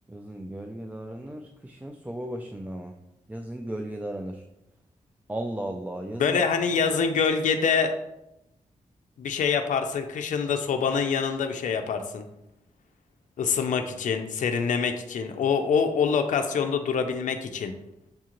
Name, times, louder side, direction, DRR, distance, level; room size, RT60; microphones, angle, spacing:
voice 1, 0.1-2.9 3.3-4.4 5.3-6.4, right 1 dB, 10° right, 3 dB, 0.3 m, -35 dB
voice 2, 6.2-7.9 9.2-12.2 13.4-17.7, left 6 dB, 70° left, 6 dB, 0.4 m, -25 dB
6.6 x 2.4 x 2.9 m, 0.88 s
cardioid pair, 75°, 13 cm